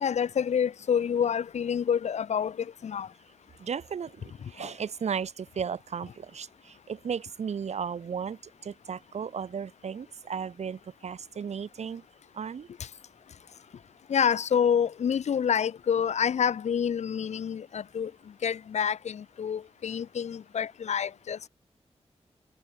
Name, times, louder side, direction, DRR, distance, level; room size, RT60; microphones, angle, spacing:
voice 1, 0.0-3.1 4.4-4.7 12.8-12.9 14.1-18.1 18.4-21.4, left 8 dB, 90° left, 1.1 m, -28 dB
voice 2, 3.6-12.0 12.3-12.7, right 7 dB, 80° right, 4.2 m, -35 dB
wide cardioid pair, 160°, 11 cm